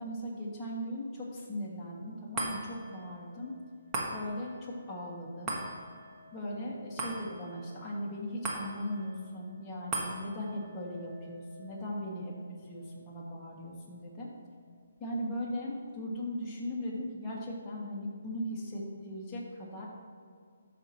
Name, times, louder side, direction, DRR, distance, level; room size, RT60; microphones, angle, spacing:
voice 1, 0.0-3.6 4.1-5.6 6.3-14.3 15.0-19.9, equal, 15° left, -6 dB, 1.9 m, -38 dB
sound 1, 2.3-14.9 15.4-15.5, right 2 dB, 15° right, 1.4 m, -42 dB
13.5 x 5.9 x 3.0 m, 2.2 s
hypercardioid pair, 155°, 0 cm